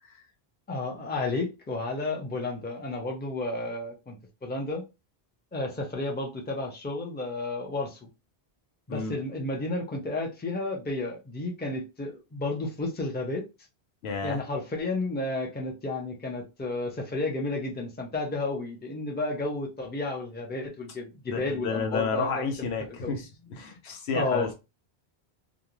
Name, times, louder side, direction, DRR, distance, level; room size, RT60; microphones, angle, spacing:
voice 1, 0.7-4.2 4.4-4.8 5.5-8.1 8.9-13.5 14.2-22.7 23.0-23.1 24.1-24.5, left 2 dB, 15° left, 0.5 m, -32 dB
voice 2, 14.0-14.4 21.3-24.5, left 5 dB, 90° left, 0.9 m, -31 dB
2.5 x 2.2 x 2.9 m
omnidirectional pair, 1.0 m